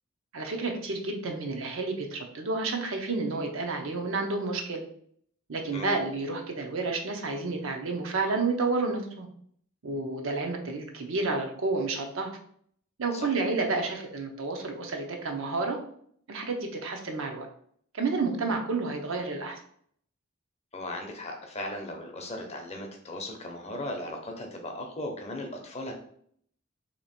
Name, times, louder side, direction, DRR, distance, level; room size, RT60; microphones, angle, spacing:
voice 1, 0.3-4.8 5.5-9.3 9.8-12.3 13.0-15.8 16.3-17.5 17.9-19.6, right 3 dB, 65° right, 3 dB, 0.7 m, -30 dB
voice 2, 20.7-25.9, left 1 dB, 30° left, 2 dB, 0.7 m, -37 dB
2.9 x 2.9 x 4.2 m, 0.63 s
head